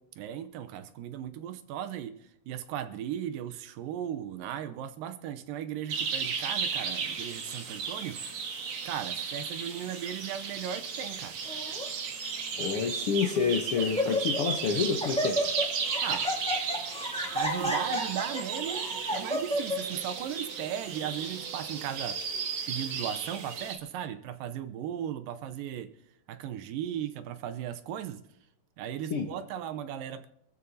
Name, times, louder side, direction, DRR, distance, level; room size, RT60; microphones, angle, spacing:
voice 1, 0.2-2.2 2.5-8.2 8.9-11.4 14.0-14.1 16.0-16.3 17.3-22.3 22.7-25.9 26.3-28.2 28.8-30.3, right 10 dB, 90° right, 9 dB, 2.5 m, -37 dB
sound 1, 5.9-23.8, right 6 dB, 65° right, 2.8 m, -35 dB
Laughter, 11.4-11.9 12.6-12.7 13.2-13.5 13.8-14.5 14.8-19.8, left 1 dB, ahead, 1.7 m, -31 dB
voice 2, 12.6-15.4 29.1-29.3, left 6 dB, 70° left, 3 dB, 1.4 m, -28 dB
25.5 x 14.0 x 2.8 m, 0.79 s
omnidirectional pair, 3.8 m